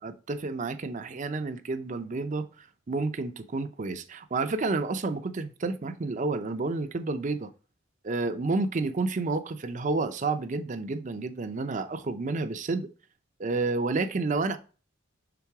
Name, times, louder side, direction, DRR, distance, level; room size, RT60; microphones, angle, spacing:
voice 1, 0.0-7.5 8.0-12.9 13.4-14.6, right 3 dB, 40° right, 0.5 m, -30 dB
5.9 x 3.7 x 4.7 m
head